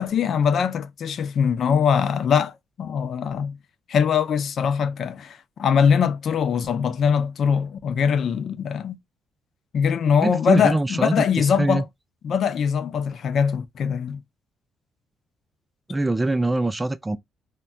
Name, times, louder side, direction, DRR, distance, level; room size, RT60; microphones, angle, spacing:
voice 1, 0.0-3.6 3.9-9.0 9.7-11.8 12.2-14.2, left 7 dB, 60° left, 0.4 m, -22 dB
voice 2, 10.2-11.8 15.9-17.2, right 2 dB, 15° right, 0.3 m, -23 dB
2.2 x 2.1 x 3.8 m
cardioid pair, 90°, 0 cm